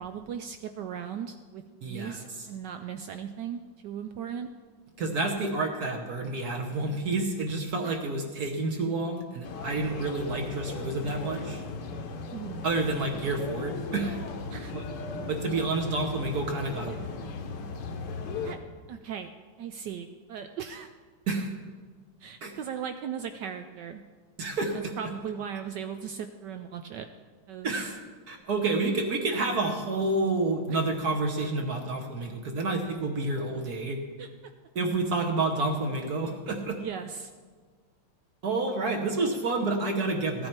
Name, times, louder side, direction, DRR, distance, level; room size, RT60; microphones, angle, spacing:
voice 1, 0.0-4.5 7.8-8.0 12.3-12.6 14.5-14.7 18.4-18.6 18.9-19.3 19.6-20.9 22.2-24.0 24.7-27.1 27.5-28.0 30.7-30.8 34.2-34.5 36.8-37.3, right 8 dB, 80° right, 8 dB, 0.9 m, -38 dB
voice 2, 1.8-2.2 5.0-11.6 12.6-14.2 14.7-14.8 15.3-17.0 21.3-21.5 22.4-22.5 24.4-24.9 27.6-28.0 28.3-34.0 34.7-36.8 38.4-40.5, right 3 dB, 55° right, 3 dB, 1.2 m, -29 dB
sound 1, 9.4-18.6, left 4 dB, 60° left, 1.4 m, -37 dB
14.5 x 9.6 x 4.4 m, 1.5 s
omnidirectional pair, 2.4 m